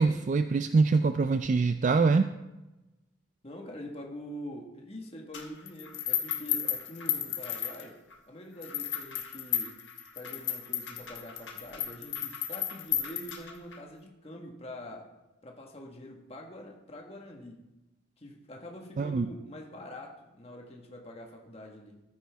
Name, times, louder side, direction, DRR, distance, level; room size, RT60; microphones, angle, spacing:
voice 1, 0.0-2.3 19.0-19.3, right 4 dB, 40° right, 9 dB, 0.3 m, -24 dB
voice 2, 3.4-8.0 8.3-9.8 10.1-15.1 15.4-17.6 18.2-22.0, equal, 30° left, 1 dB, 1.5 m, -45 dB
sound 1, 5.3-8.1 8.6-13.8, left 10 dB, 70° left, 1.4 m, -33 dB
14.0 x 9.5 x 3.5 m, 1.0 s
head